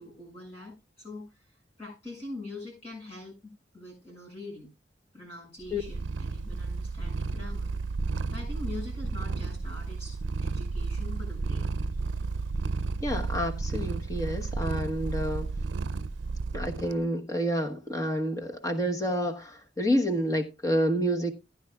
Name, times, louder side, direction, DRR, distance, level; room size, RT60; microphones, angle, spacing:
voice 1, 0.0-4.7 5.1-7.7 8.3-11.7, left 2 dB, 35° left, 6.1 m, -43 dB
Purr, 5.7-17.0, right 4 dB, 90° right, 0.5 m, -32 dB
voice 2, 13.0-15.5 16.5-21.3, equal, 20° left, 1.1 m, -29 dB
15.0 x 9.6 x 2.3 m
head